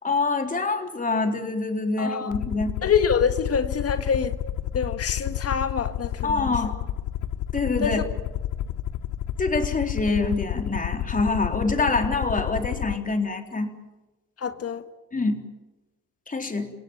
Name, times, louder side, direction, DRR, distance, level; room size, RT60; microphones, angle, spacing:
voice 1, 0.0-2.7 6.2-6.8 7.5-8.0 9.4-13.7 15.1-15.4 16.3-16.7, left 3 dB, 25° left, 3.9 m, -25 dB
voice 2, 2.0-2.4 2.8-4.4 4.7-6.5 7.8-8.0 14.4-14.8, left 6 dB, 50° left, 1.7 m, -25 dB
Aircraft, 2.3-13.0, left 12 dB, 80° left, 0.9 m, -30 dB
30.0 x 17.0 x 9.2 m
cardioid pair, 90°, 30 cm